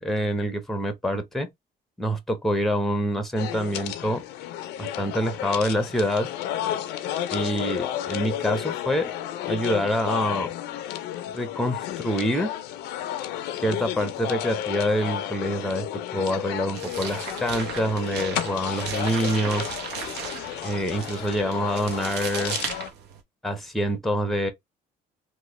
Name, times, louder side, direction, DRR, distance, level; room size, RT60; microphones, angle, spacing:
voice 1, 0.0-1.5 2.0-4.2 4.8-6.3 7.3-9.1 9.5-10.5 11.3-12.5 13.6-19.7 20.6-22.6 23.4-24.5, equal, ahead, 0.6 m, -26 dB
sound 1, 3.4-22.9, left 11 dB, 85° left, 0.5 m, -32 dB
sound 2, 16.7-23.2, right 6 dB, 85° right, 0.8 m, -36 dB
3.0 x 2.1 x 3.0 m
cardioid pair, 110°, 17 cm